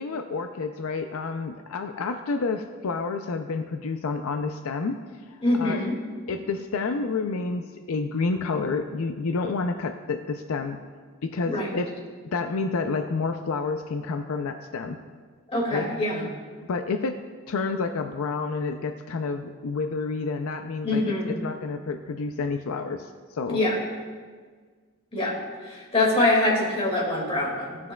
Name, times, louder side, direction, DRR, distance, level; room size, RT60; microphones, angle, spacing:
voice 1, 0.0-5.0 5.3-5.8 6.3-10.8 11.2-11.9 12.2-15.0 15.7-15.9 16.7-17.2 17.5-23.6, left 4 dB, 75° left, 6 dB, 0.4 m, -29 dB
voice 2, 5.4-5.9 11.5-11.7 15.5-16.3 20.8-21.4 23.5-23.7 25.1-25.4 25.6-27.9, left 2 dB, 25° left, -4 dB, 2.0 m, -24 dB
15.5 x 6.0 x 2.3 m, 1.6 s
head